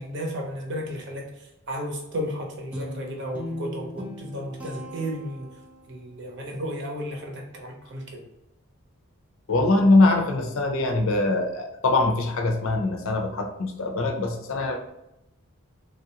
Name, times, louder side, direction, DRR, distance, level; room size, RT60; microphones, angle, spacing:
voice 1, 0.0-5.5 5.9-8.2, equal, 55° right, 0 dB, 0.8 m, -33 dB
Guitar, 2.7-6.0, left 1 dB, 5° right, 0.4 m, -38 dB
voice 2, 9.5-14.9, left 2 dB, 75° left, 3 dB, 0.5 m, -22 dB
3.2 x 2.4 x 2.8 m, 0.89 s
head